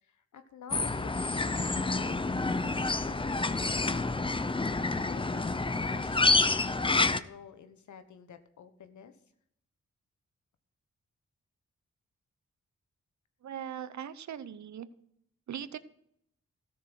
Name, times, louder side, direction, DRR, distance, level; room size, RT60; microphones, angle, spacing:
voice 1, 0.0-2.7 3.1-4.2 4.7-6.2 6.7-9.1, left 7 dB, 80° left, 10 dB, 1.2 m, -50 dB
sound 1, 0.7-7.2, left 3 dB, 20° left, 0.6 m, -28 dB
voice 2, 13.4-14.9 15.5-15.8, right 9 dB, 70° right, 15 dB, 0.8 m, -40 dB
13.5 x 6.6 x 6.3 m, 0.72 s
cardioid pair, 55°, 29 cm